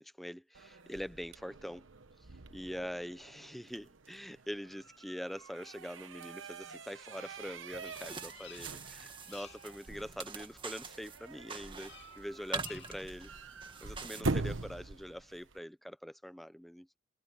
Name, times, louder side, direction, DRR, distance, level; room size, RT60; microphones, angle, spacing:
voice 1, 0.0-1.9 2.5-13.3 13.8-16.9, equal, ahead, 0.6 m, -44 dB
sound 1, 0.5-15.6, right 3 dB, 80° right, 1.2 m, -44 dB
Bird vocalization bird call bird song, 7.7-8.9 9.2-9.7 11.8-12.2 12.5-13.1, left 9 dB, 65° left, 2.8 m, -54 dB
sound 2, 7.7-14.2, right 4 dB, 25° right, 1.8 m, -45 dB
head